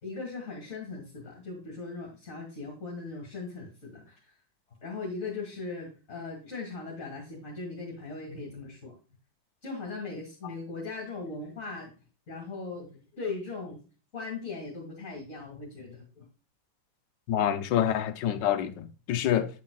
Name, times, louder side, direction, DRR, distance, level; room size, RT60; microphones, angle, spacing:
voice 1, 0.0-4.2 4.8-8.9 9.6-11.9 12.3-13.8 14.1-16.3, left 3 dB, 45° left, 2.3 m, -39 dB
voice 2, 17.3-19.5, left 10 dB, 75° left, 1.3 m, -27 dB
8.5 x 7.5 x 2.3 m
omnidirectional pair, 2.0 m